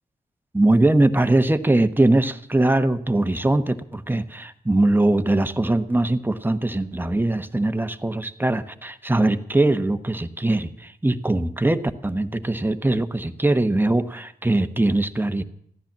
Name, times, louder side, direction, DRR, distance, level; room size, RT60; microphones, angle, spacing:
voice 1, 0.5-15.4, right 2 dB, 15° right, 10 dB, 1.1 m, -21 dB
15.0 x 10.5 x 7.4 m, 0.67 s
cardioid pair, 55°, 16 cm